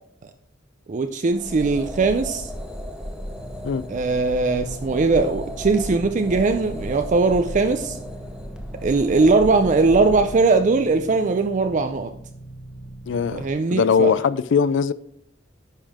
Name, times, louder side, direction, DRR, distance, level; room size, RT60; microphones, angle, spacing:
voice 1, 0.9-2.5 3.9-8.0 8.8-12.1 13.3-14.1, right 3 dB, 40° right, 0.4 m, -20 dB
sound 1, 1.3-10.4, equal, 5° right, 1.0 m, -34 dB
sound 2, 3.3-13.5, right 2 dB, 25° left, 1.4 m, -41 dB
voice 2, 13.1-14.9, left 6 dB, 65° left, 0.4 m, -21 dB
9.9 x 5.5 x 3.5 m
head